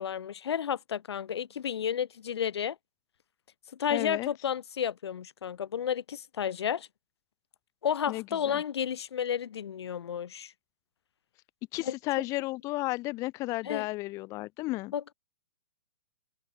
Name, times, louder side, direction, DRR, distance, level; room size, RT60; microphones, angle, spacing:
voice 1, 0.0-2.8 3.8-6.9 7.8-10.5 11.8-11.9 13.6-13.9 14.9-15.1, left 8 dB, 85° left, 0.9 m, -32 dB
voice 2, 3.9-4.3 8.1-8.6 11.7-14.9, left 20 dB, 25° left, 0.6 m, -33 dB
hypercardioid pair, 150°, 13 cm